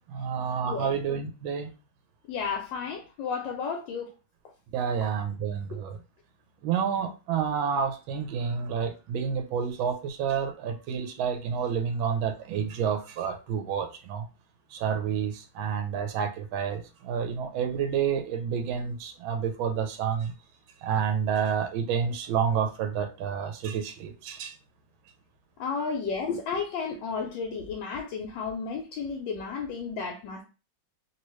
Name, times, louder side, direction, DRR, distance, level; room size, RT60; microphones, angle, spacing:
voice 1, 0.1-1.7 4.7-6.0 6.6-14.3 14.7-20.3 20.8-24.5, right 7 dB, 80° right, 6 dB, 1.4 m, -29 dB
voice 2, 0.7-1.0 2.3-4.1 25.6-30.4, left 5 dB, 75° left, 2 dB, 1.2 m, -32 dB
3.0 x 2.9 x 3.0 m, 0.32 s
omnidirectional pair, 2.1 m